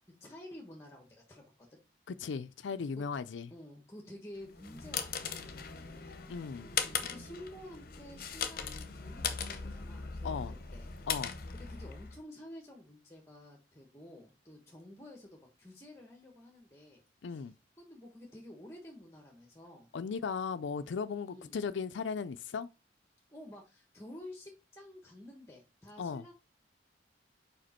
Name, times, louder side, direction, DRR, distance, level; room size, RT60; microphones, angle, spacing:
voice 1, 0.2-1.8 3.0-3.1 3.5-6.2 7.0-10.9 11.5-17.0 17.3-19.9 21.2-21.6 23.3-26.3, left 1 dB, 15° left, 1.2 m, -51 dB
voice 2, 2.1-3.5 6.3-6.7 10.2-10.5 11.1-11.4 17.2-17.5 19.9-22.7 26.0-26.2, left 5 dB, 80° left, 0.4 m, -37 dB
sound 1, 4.4-12.2, left 6 dB, 50° left, 0.8 m, -39 dB
5.1 x 4.9 x 4.3 m
head